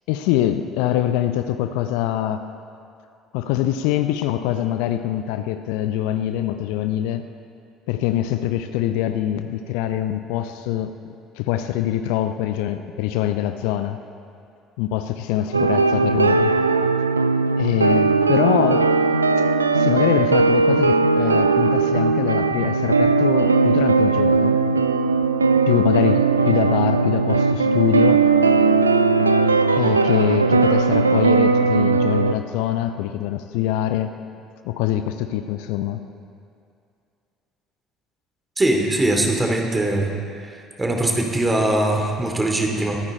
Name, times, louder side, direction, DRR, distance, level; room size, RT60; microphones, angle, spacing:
voice 1, 0.1-2.5 3.3-7.2 7.9-14.0 14.8-16.5 17.6-18.9 19.7-24.6 25.7-28.3 29.7-34.1 34.6-36.0, left 12 dB, 65° left, 9 dB, 0.6 m, -24 dB
sound 1, 15.5-32.3, right 4 dB, 90° right, 0.4 m, -18 dB
voice 2, 38.6-40.1 40.5-43.0, right 1 dB, 20° right, 2 dB, 2.7 m, -21 dB
24.0 x 9.7 x 4.3 m, 2.4 s
figure-of-eight pair, 55°, 0 cm